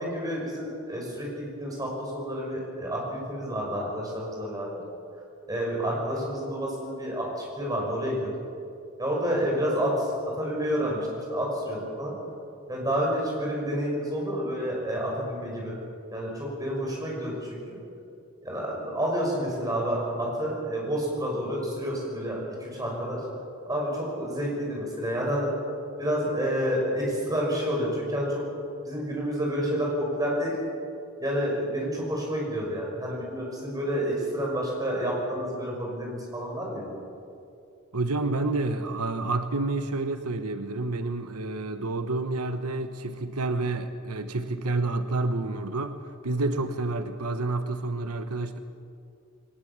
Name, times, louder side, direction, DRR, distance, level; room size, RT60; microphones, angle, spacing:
voice 1, 0.0-4.7 5.5-8.3 9.0-10.1 10.4-12.1 12.7-15.7 16.1-17.8 18.4-23.2 23.7-25.5 26.0-28.4 28.8-30.5 31.2-36.8, equal, 15° right, -2 dB, 6.0 m, -29 dB
voice 2, 37.9-46.0 46.2-48.6, right 2 dB, 85° right, 8 dB, 1.0 m, -29 dB
21.0 x 19.5 x 7.4 m, 2.5 s
head